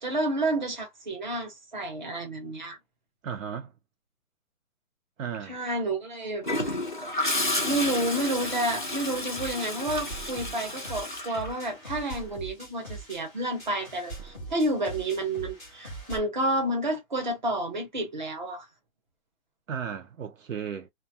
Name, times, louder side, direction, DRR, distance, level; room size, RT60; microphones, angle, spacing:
voice 1, 0.0-2.8 5.5-6.5 7.6-18.6, right 1 dB, 35° right, 0.8 m, -30 dB
voice 2, 3.2-3.7 5.2-5.6 19.7-20.9, right 7 dB, 65° right, 0.6 m, -35 dB
Gurgling / Toilet flush, 6.4-12.2 14.2-14.4, left 1 dB, 40° left, 0.4 m, -31 dB
sound 1, 9.1-16.2, right 2 dB, 10° left, 0.7 m, -42 dB
2.3 x 2.2 x 2.6 m
hypercardioid pair, 180°, 42 cm